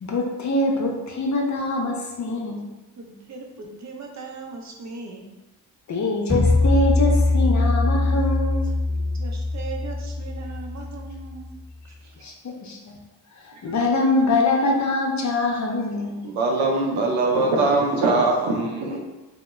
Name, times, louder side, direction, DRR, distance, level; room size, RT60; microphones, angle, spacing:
voice 1, 0.0-2.6 5.9-8.7 12.2-12.8 13.4-16.2, left 2 dB, 40° left, 0 dB, 0.6 m, -24 dB
voice 2, 3.0-5.2 8.9-11.6 11.8-12.2, right 4 dB, 35° right, 2 dB, 0.6 m, -39 dB
sound 1, 6.3-11.3, left 2 dB, 10° right, 1.0 m, -22 dB
voice 3, 16.2-19.0, right 3 dB, 85° right, 0 dB, 0.6 m, -21 dB
2.2 x 2.1 x 3.0 m, 1.0 s
supercardioid pair, 50°, 46 cm